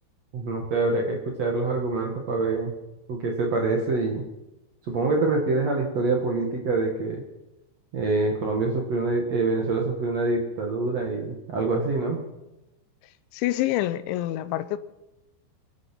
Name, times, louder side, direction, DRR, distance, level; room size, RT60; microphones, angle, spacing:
voice 1, 0.3-2.7 3.1-4.2 4.8-7.2 7.9-12.2, right 3 dB, 55° right, 2.0 m, -25 dB
voice 2, 13.3-14.8, left 14 dB, 85° left, 3.0 m, -26 dB
24.0 x 9.4 x 6.0 m
omnidirectional pair, 5.2 m